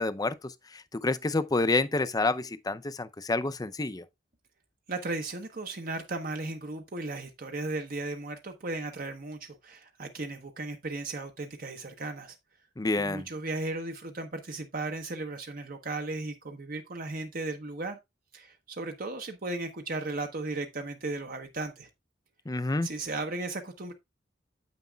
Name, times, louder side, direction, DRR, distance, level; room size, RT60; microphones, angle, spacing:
voice 1, 0.0-4.0 12.8-13.3 22.5-22.9, left 2 dB, 20° left, 0.5 m, -29 dB
voice 2, 4.9-12.4 13.0-18.0 18.3-21.9 22.8-23.9, right 2 dB, 50° right, 1.0 m, -36 dB
9.4 x 8.1 x 2.3 m
head